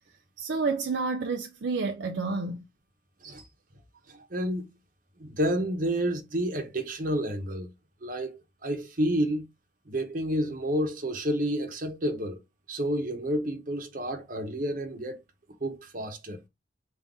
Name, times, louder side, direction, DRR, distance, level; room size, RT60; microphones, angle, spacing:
voice 1, 0.4-2.6, right 4 dB, 65° right, 0.4 m, -29 dB
voice 2, 4.1-4.7 5.2-7.7 8.0-9.5 9.9-12.4 12.7-15.2 15.6-16.4, equal, 45° right, 0.9 m, -30 dB
3.8 x 2.5 x 3.5 m
head